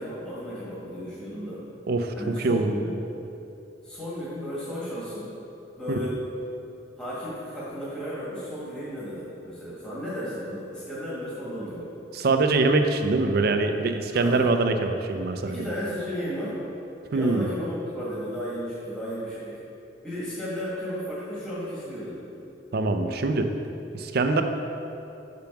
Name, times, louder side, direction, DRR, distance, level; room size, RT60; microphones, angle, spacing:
voice 1, 0.0-1.6 2.2-3.0 3.8-5.3 5.8-6.2 7.0-11.9 14.1-14.5 15.4-16.6 17.1-19.6 20.0-22.3, equal, 5° left, -9 dB, 1.5 m, -34 dB
voice 2, 1.9-2.8 12.1-15.6 17.1-17.5 22.7-23.5 23.9-24.4, right 3 dB, 55° right, 6 dB, 0.5 m, -23 dB
5.8 x 5.2 x 5.9 m, 2.8 s
head